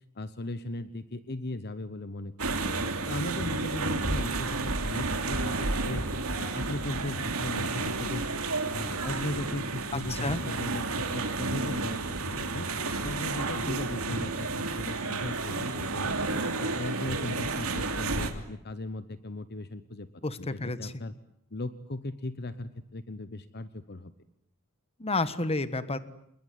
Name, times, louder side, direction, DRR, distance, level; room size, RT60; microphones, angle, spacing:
voice 1, 0.1-2.3 2.6-2.7 3.1-6.0 6.4-8.3 8.7-12.7 13.0-16.1 16.4-20.1 20.4-21.1 21.5-24.1, left 2 dB, 45° left, 13 dB, 1.1 m, -37 dB
sound 1, 2.4-18.3, right 3 dB, 70° right, 3.0 m, -31 dB
voice 2, 9.9-10.4 20.2-21.0 25.0-26.0, left 2 dB, 25° left, 13 dB, 1.4 m, -30 dB
27.5 x 21.0 x 9.5 m, 0.74 s
head